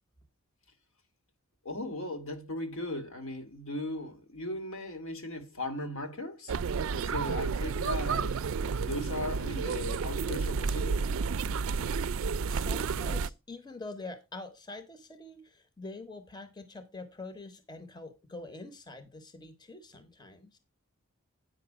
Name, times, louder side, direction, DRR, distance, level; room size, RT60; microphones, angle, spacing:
voice 1, 1.6-6.5 6.9-8.4 8.8-11.1, left 1 dB, 75° left, 1.9 m, -37 dB
sound 1, 6.5-13.3, right 5 dB, 65° right, 0.4 m, -31 dB
voice 2, 12.5-20.6, left 2 dB, 20° left, 0.8 m, -45 dB
8.9 x 5.5 x 4.8 m
head